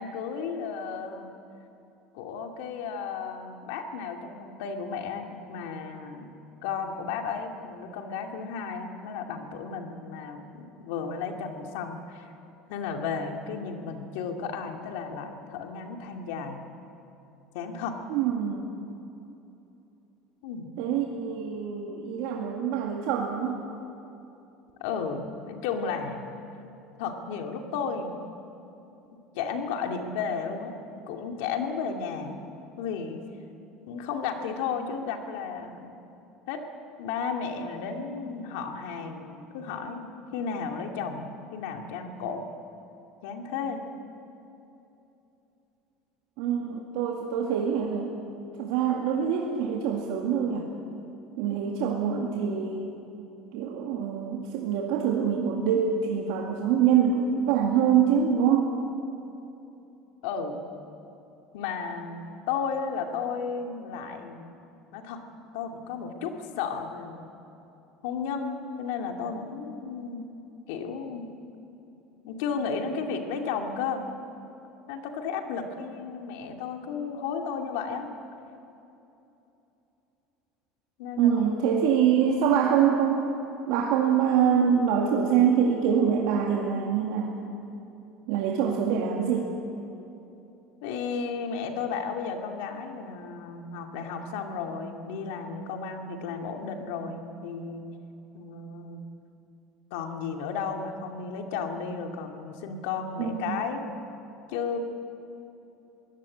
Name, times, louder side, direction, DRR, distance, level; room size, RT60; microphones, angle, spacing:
voice 1, 0.0-1.3 2.1-6.3 6.6-12.3 12.7-16.6 17.5-18.0 20.4-20.7 24.8-26.2 27.0-28.2 29.3-30.8 31.1-32.4 32.8-33.2 33.9-35.9 36.5-36.6 37.0-42.5 43.2-43.8 60.2-60.7 61.5-64.5 64.9-65.2 65.5-67.3 68.0-70.3 70.7-71.3 72.2-74.0 74.9-78.1 81.0-81.3 81.7-81.8 90.8-97.9 98.3-99.0 99.9-103.8 104.5-104.8, left 5 dB, 80° left, 3 dB, 2.5 m, -33 dB
voice 2, 18.1-18.8 20.8-23.6 46.4-48.1 48.6-50.7 51.4-52.9 53.5-58.7 81.2-83.3 83.7-87.3 88.3-89.5 103.2-103.6, right 8 dB, 70° right, -1 dB, 2.2 m, -25 dB
22.5 x 17.0 x 8.7 m, 2.9 s
cardioid pair, 155°, 0 cm